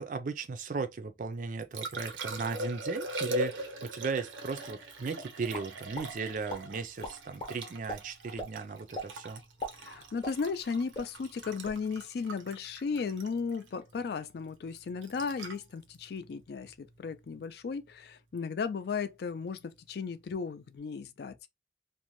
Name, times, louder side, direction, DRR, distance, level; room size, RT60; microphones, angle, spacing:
voice 1, 0.0-9.4, right 4 dB, 45° right, 0.4 m, -36 dB
Liquid, 1.3-17.4 20.2-20.4, right 1 dB, 85° right, 0.6 m, -41 dB
sound 1, 5.5-6.1 6.5-6.6 7.0-7.5 7.9-8.0 8.4-8.5 8.9-9.1 9.4-10.7 10.9-11.1 11.5-11.8, left 1 dB, 30° left, 0.7 m, -38 dB
voice 2, 9.8-21.5, left 5 dB, 55° left, 0.3 m, -35 dB
2.6 x 2.1 x 3.0 m
head